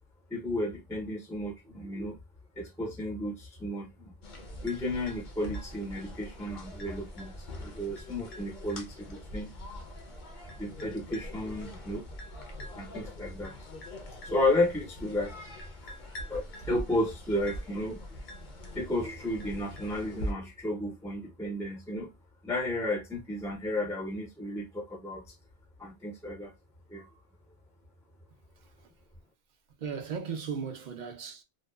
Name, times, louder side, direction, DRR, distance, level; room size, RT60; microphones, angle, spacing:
voice 1, 0.3-2.2 2.6-4.1 4.6-9.5 10.6-12.0 12.7-13.7 14.2-15.3 15.8-16.0 16.3-18.0 18.7-22.1 22.4-25.3 25.8-26.5 26.9-27.2, left 1 dB, 5° left, 0.4 m, -33 dB
sound 1, 4.2-20.3, equal, 55° left, 0.7 m, -43 dB
voice 2, 28.6-28.9 29.7-31.4, right 6 dB, 55° right, 0.6 m, -37 dB
2.6 x 2.1 x 2.2 m
omnidirectional pair, 1.1 m